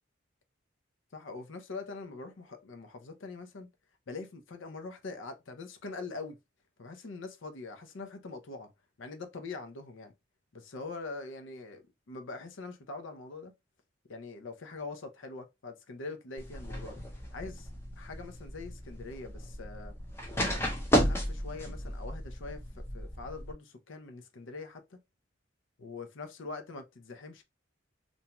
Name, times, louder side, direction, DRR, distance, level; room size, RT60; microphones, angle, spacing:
voice 1, 1.1-3.7 4.1-6.4 6.8-8.7 9.0-10.1 10.5-13.5 14.1-17.7 18.0-20.0 20.9-25.0 25.8-27.4, left 3 dB, 75° left, 0.6 m, -43 dB
sound 1, 16.4-23.5, equal, 10° left, 0.5 m, -34 dB
2.6 x 2.2 x 2.9 m
head